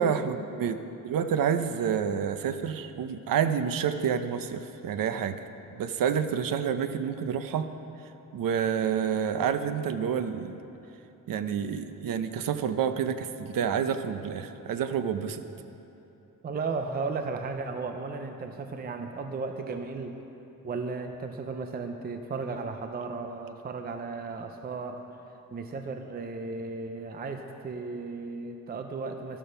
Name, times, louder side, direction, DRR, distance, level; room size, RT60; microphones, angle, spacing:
voice 1, 0.0-5.4 5.7-7.7 8.3-10.6 11.3-15.4, right 7 dB, 85° right, 10 dB, 0.7 m, -28 dB
voice 2, 16.4-20.2 20.6-25.0 25.5-29.4, right 4 dB, 30° right, 5 dB, 0.5 m, -35 dB
12.5 x 12.0 x 5.6 m, 3.0 s
wide cardioid pair, 180°, 33 cm